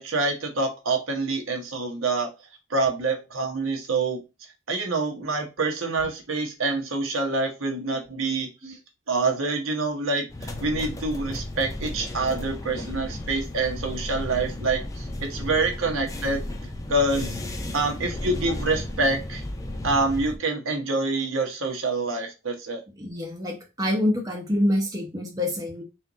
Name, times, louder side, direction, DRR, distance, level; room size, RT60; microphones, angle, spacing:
voice 1, 0.0-2.3 2.7-4.2 4.7-8.8 9.1-16.5 16.9-17.4 17.7-19.4 19.8-22.8, right 3 dB, 75° right, 1.1 m, -26 dB
sound 1, 10.3-20.4, left 1 dB, 15° left, 0.5 m, -34 dB
voice 2, 23.0-25.8, left 1 dB, 15° right, 0.8 m, -26 dB
4.4 x 2.6 x 3.9 m
head